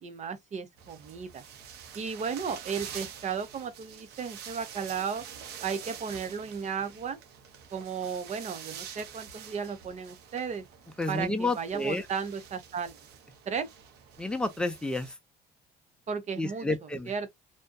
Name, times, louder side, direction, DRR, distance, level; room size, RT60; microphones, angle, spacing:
voice 1, 0.0-1.4 1.9-5.2 5.6-7.2 7.7-10.6 11.1-12.9 13.5-13.7 16.1-17.3, right 6 dB, 45° right, 0.8 m, -34 dB
sound 1, 0.8-15.1, right 8 dB, 80° right, 0.8 m, -46 dB
voice 2, 11.0-12.0 14.2-15.1 16.4-17.1, left 2 dB, 5° left, 0.6 m, -30 dB
2.6 x 2.2 x 2.2 m
cardioid pair, 110°, 17 cm